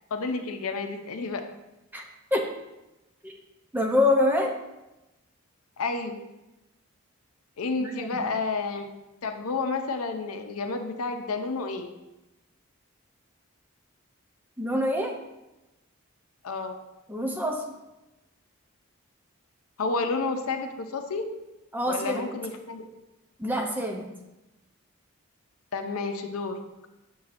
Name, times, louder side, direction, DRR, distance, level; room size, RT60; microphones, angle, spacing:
voice 1, 0.1-1.4 5.8-6.2 7.6-8.9 9.2-11.9 16.4-16.8 19.8-21.3 21.9-22.9 25.7-26.6, left 3 dB, 85° left, 6 dB, 0.6 m, -30 dB
voice 2, 3.7-4.5 7.8-8.2 14.6-15.2 17.1-17.6 21.7-22.2 23.4-24.1, left 1 dB, 10° right, 2 dB, 0.5 m, -25 dB
6.8 x 5.6 x 2.5 m, 0.98 s
head